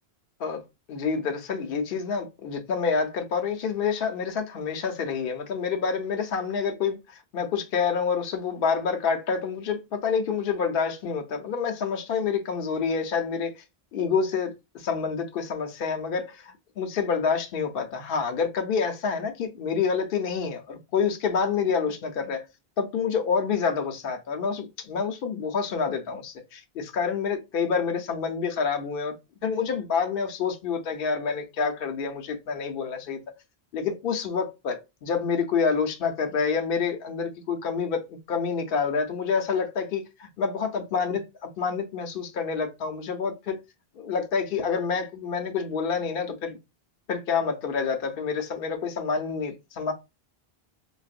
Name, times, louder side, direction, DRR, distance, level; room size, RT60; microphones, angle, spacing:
voice 1, 0.9-13.6 13.9-22.4 22.8-29.2 29.4-33.2 33.7-38.0 38.3-43.6 44.0-46.6 47.1-49.9, left 5 dB, 65° left, 0.8 m, -28 dB
4.0 x 2.0 x 2.4 m
omnidirectional pair, 1.0 m